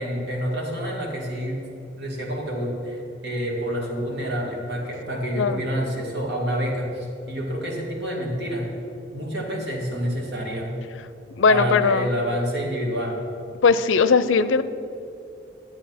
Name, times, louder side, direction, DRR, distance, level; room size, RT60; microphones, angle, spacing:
voice 1, 0.0-1.6 2.0-8.7 9.1-10.7 11.5-13.2, equal, 60° right, -1 dB, 2.2 m, -28 dB
voice 2, 11.4-12.1 13.6-14.6, left 5 dB, 90° left, 14 dB, 0.5 m, -19 dB
11.0 x 7.6 x 5.8 m, 2.7 s
head